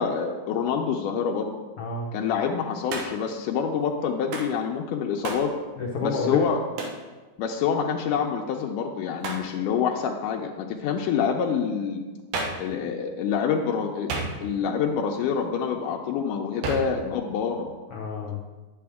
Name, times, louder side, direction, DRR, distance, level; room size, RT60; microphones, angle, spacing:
voice 1, 0.0-1.5 2.1-5.5 6.0-6.6 7.4-12.0 12.6-14.1 14.4-17.7, left 6 dB, 85° left, 1 dB, 2.2 m, -26 dB
voice 2, 1.8-2.1 5.8-6.5 17.9-18.4, left 4 dB, 70° left, -2 dB, 1.3 m, -29 dB
Hands, 2.9-3.3 4.3-4.6 5.2-5.5 6.8-7.0 9.2-9.5 12.3-12.7 14.1-14.7 16.6-17.0, right 3 dB, 80° right, 2.7 m, -31 dB
10.0 x 8.6 x 3.5 m, 1.3 s
omnidirectional pair, 3.6 m